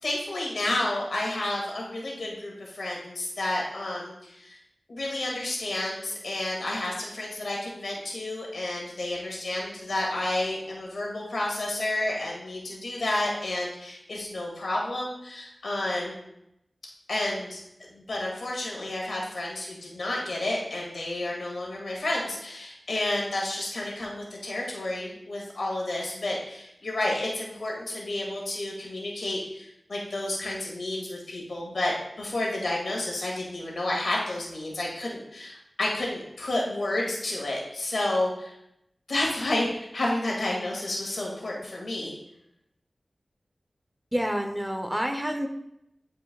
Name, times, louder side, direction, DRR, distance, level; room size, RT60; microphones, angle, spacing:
voice 1, 0.0-4.6 4.9-16.2 17.1-17.6 17.9-38.5 39.1-39.7 39.9-42.2, left 1 dB, 85° left, -2 dB, 1.9 m, -30 dB
voice 2, 44.1-45.5, equal, 10° right, 4 dB, 0.7 m, -28 dB
11.0 x 4.7 x 2.3 m, 0.80 s
wide cardioid pair, 65°, 0 cm